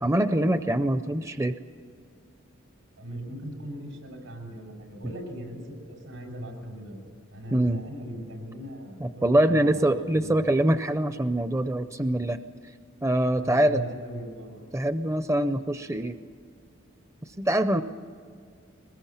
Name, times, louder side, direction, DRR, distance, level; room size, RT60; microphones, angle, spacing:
voice 1, 0.0-1.6 7.5-7.8 9.0-12.4 13.0-13.8 14.7-16.2 17.4-17.8, right 1 dB, 15° right, 11 dB, 0.4 m, -24 dB
voice 2, 3.0-5.6 5.9-7.0 7.3-10.6 13.4-14.6, right 1 dB, 90° right, 2 dB, 6.1 m, -39 dB
22.5 x 20.5 x 7.2 m, 2.2 s
head